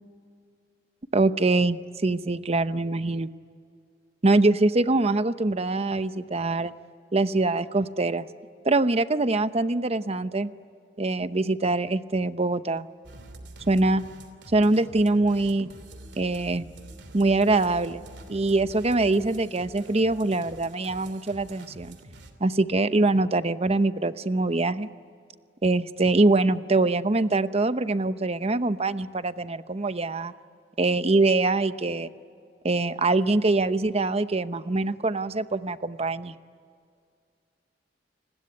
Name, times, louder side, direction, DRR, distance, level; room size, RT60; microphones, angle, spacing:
voice 1, 1.1-3.3 4.2-6.7 7.1-8.3 8.7-10.5 11.0-12.9 13.7-14.0 14.5-15.7 16.2-16.7 17.1-18.0 18.3-22.0 22.4-24.9 25.6-30.3 30.8-32.1 32.6-36.4, right 2 dB, 35° right, 12 dB, 0.8 m, -23 dB
sound 1, 13.0-22.3, right 1 dB, 70° right, 2.9 m, -46 dB
29.5 x 21.0 x 9.7 m, 2.2 s
head